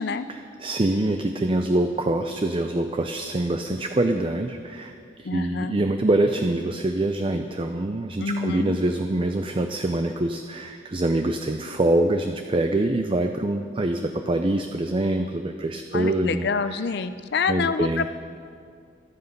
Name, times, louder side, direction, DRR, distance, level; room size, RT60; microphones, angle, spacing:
voice 1, 0.3-16.7 17.5-18.1, right 1 dB, 30° right, 6 dB, 0.5 m, -25 dB
voice 2, 5.2-5.8 8.2-8.8 15.9-18.1, left 4 dB, 65° left, 11 dB, 0.5 m, -27 dB
23.0 x 8.1 x 5.4 m, 2.2 s
head